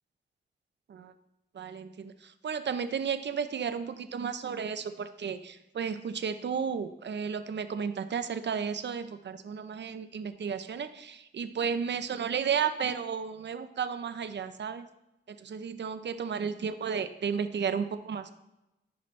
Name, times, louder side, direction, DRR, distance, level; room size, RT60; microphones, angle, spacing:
voice 1, 1.5-14.9 15.3-18.3, right 6 dB, 65° right, 10 dB, 0.7 m, -33 dB
14.0 x 5.8 x 3.2 m, 0.96 s
wide cardioid pair, 95°, 19 cm